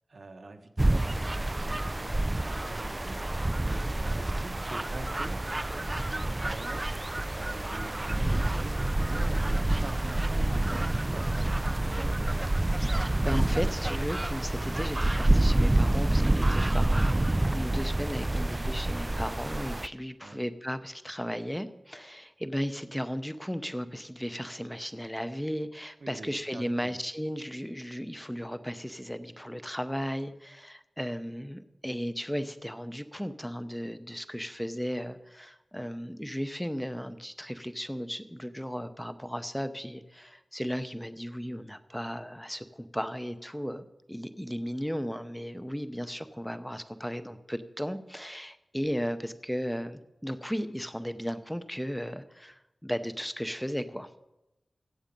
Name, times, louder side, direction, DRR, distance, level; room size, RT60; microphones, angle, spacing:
voice 1, 0.1-6.9 7.3-12.5 20.2-20.4 26.0-26.9, right 3 dB, 65° right, 5 dB, 1.1 m, -45 dB
sound 1, 0.8-19.9, right 1 dB, 20° right, 0.3 m, -27 dB
voice 2, 12.8-54.1, equal, 5° left, 11 dB, 0.7 m, -35 dB
14.5 x 8.1 x 5.3 m, 0.94 s
wide cardioid pair, 100°, 0 cm